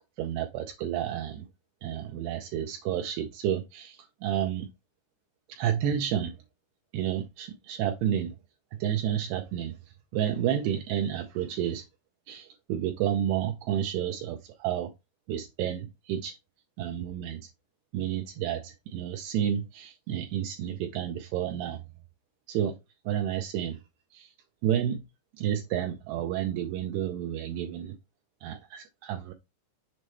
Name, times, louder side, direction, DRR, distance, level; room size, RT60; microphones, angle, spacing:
voice 1, 0.2-1.5 1.8-4.7 5.5-6.3 6.9-8.3 8.8-9.8 10.1-11.9 12.3-14.9 15.3-16.4 16.8-17.5 17.9-21.8 22.5-22.8 23.1-23.8 24.1-24.3 24.6-25.0 25.3-28.0 28.4-29.3, right 10 dB, 80° right, 2.5 m, -30 dB
7.4 x 4.1 x 3.3 m
omnidirectional pair, 5.1 m